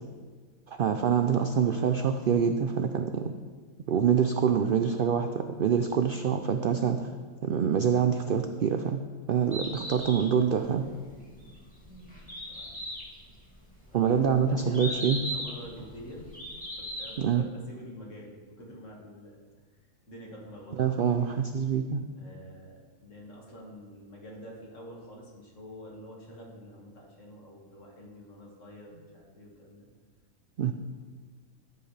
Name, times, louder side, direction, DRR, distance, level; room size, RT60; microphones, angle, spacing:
voice 1, 0.7-3.3 3.9-7.1 7.4-9.0 9.3-10.9 13.9-15.2 17.2-17.4 20.8-22.0 30.6-30.7, right 7 dB, 80° right, 7 dB, 0.5 m, -25 dB
Bird, 9.4-17.3, equal, 5° left, 2.3 m, -39 dB
voice 2, 11.9-12.2 12.5-12.8 13.9-16.3 16.8-19.4 20.1-21.0 22.1-29.9, equal, 60° left, -2 dB, 2.2 m, -47 dB
13.5 x 8.0 x 3.3 m, 1.5 s
omnidirectional pair, 1.5 m